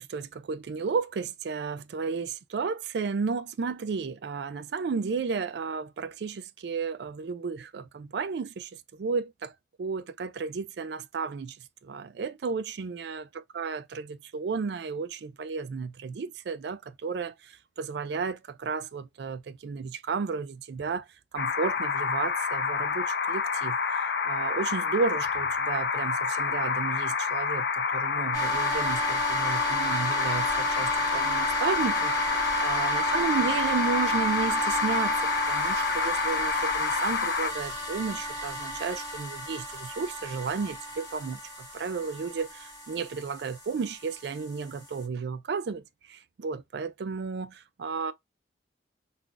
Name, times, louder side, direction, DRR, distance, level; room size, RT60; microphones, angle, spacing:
voice 1, 0.0-9.5 9.8-11.6 11.8-21.1 21.3-35.2 35.5-48.1, right 5 dB, 65° right, 0.4 m, -33 dB
sound 1, 21.4-37.5, left 5 dB, 60° left, 0.4 m, -28 dB
sound 2, 28.3-45.0, right 1 dB, 20° left, 1.5 m, -33 dB
3.8 x 2.3 x 2.3 m
head